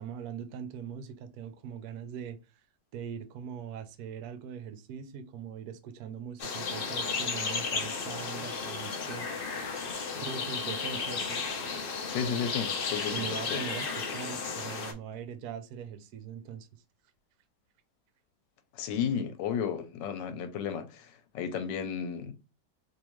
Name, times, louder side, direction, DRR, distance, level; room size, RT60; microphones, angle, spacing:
voice 1, 0.0-2.6 2.9-9.3 10.2-11.4 13.1-16.7, right 8 dB, 70° right, 1.0 m, -41 dB
sound 1, 6.4-14.9, left 5 dB, 65° left, 0.5 m, -34 dB
voice 2, 12.1-13.6 18.7-22.3, left 7 dB, 90° left, 1.3 m, -33 dB
3.6 x 2.9 x 3.0 m
omnidirectional pair, 1.9 m